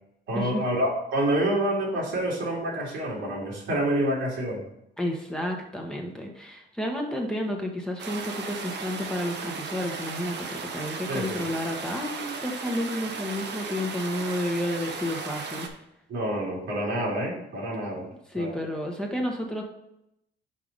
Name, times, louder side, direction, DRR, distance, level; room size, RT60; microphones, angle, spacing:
voice 1, 0.3-4.6 11.1-11.5 16.1-18.1 18.3-18.6, right 1 dB, 80° right, -4 dB, 2.8 m, -27 dB
voice 2, 5.0-15.8 18.3-19.6, left 1 dB, 5° left, 0 dB, 1.2 m, -31 dB
sound 1, 8.0-15.7, right 5 dB, 60° right, 1.0 m, -36 dB
5.6 x 4.7 x 5.2 m, 0.80 s
cardioid pair, 90°, 20 cm